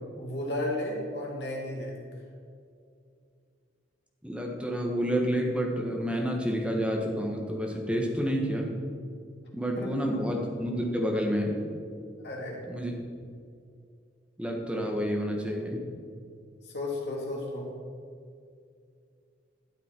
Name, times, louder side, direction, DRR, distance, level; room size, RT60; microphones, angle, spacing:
voice 1, 0.2-2.0 9.7-10.2 12.2-12.6 16.6-17.7, left 1 dB, 70° left, -2 dB, 2.4 m, -34 dB
voice 2, 4.2-8.7 9.5-11.7 12.7-12.9 14.4-15.8, equal, 5° right, 0 dB, 1.3 m, -29 dB
12.0 x 7.4 x 4.5 m, 2.3 s
head